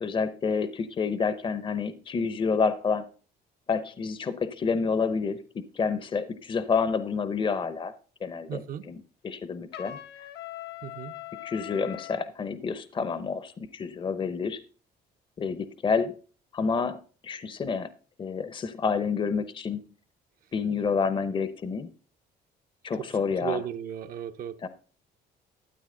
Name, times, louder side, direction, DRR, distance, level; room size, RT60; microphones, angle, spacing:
voice 1, 0.0-3.0 3.7-7.9 8.2-9.0 9.2-10.2 11.4-14.6 15.4-16.1 16.5-17.9 18.2-19.9 20.5-21.9 22.8-23.6 24.6-24.7, left 5 dB, 30° left, 0.7 m, -29 dB
voice 2, 8.5-8.9 10.8-11.1 23.0-24.7, right 9 dB, 60° right, 0.9 m, -36 dB
Trumpet, 9.7-12.3, left 14 dB, 75° left, 0.9 m, -41 dB
13.0 x 8.1 x 3.8 m
cardioid pair, 110°, 17 cm